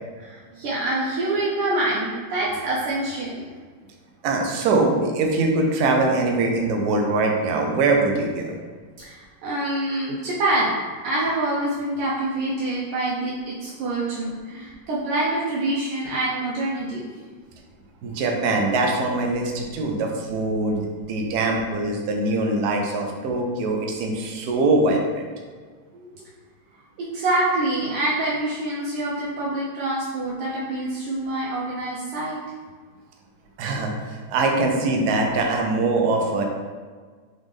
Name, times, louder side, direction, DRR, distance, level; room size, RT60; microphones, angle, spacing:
voice 1, 0.2-3.5 9.0-10.7 11.0-17.0 25.9-26.2 27.0-32.4, right 2 dB, 85° right, -6 dB, 1.6 m, -26 dB
voice 2, 4.2-8.6 18.0-25.3 33.6-36.4, right 2 dB, 70° right, 1 dB, 1.0 m, -22 dB
3.9 x 3.6 x 3.2 m, 1.5 s
omnidirectional pair, 2.3 m